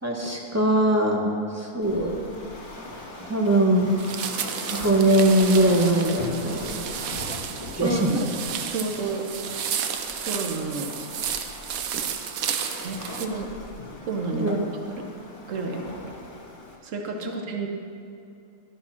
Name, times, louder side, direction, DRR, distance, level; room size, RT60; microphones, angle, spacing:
voice 1, 0.0-2.3 3.3-3.9 4.7-6.8 7.7-8.1 14.3-14.6, right 1 dB, 10° right, -1 dB, 1.0 m, -21 dB
Waves surf, 1.8-16.8, left 2 dB, 35° left, 1.9 m, -40 dB
sound 1, 4.0-13.3, right 8 dB, 90° right, 1.1 m, -32 dB
voice 2, 7.8-8.3 8.7-9.2 10.3-10.9 12.8-13.5 14.1-14.5 14.9-15.0 15.4-16.0 16.8-17.7, right 3 dB, 65° right, 2 dB, 1.4 m, -30 dB
12.5 x 5.9 x 6.0 m, 2.6 s
omnidirectional pair, 1.4 m